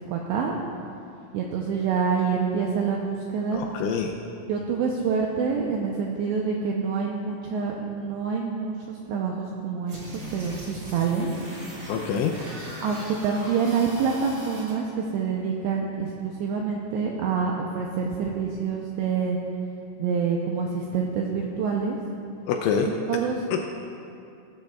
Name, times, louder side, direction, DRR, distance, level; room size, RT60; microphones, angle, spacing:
voice 1, 0.1-0.6 1.3-3.6 4.5-11.3 12.8-19.4 20.0-22.0 23.1-23.4, right 6 dB, 85° right, 0 dB, 2.5 m, -27 dB
voice 2, 3.5-4.1 11.9-12.3 22.5-22.9 23.5-23.6, left 7 dB, 80° left, 2 dB, 2.8 m, -25 dB
sound 1, 9.9-14.7, right 1 dB, 60° right, 1.1 m, -39 dB
16.5 x 13.5 x 2.4 m, 2.6 s
omnidirectional pair, 6.0 m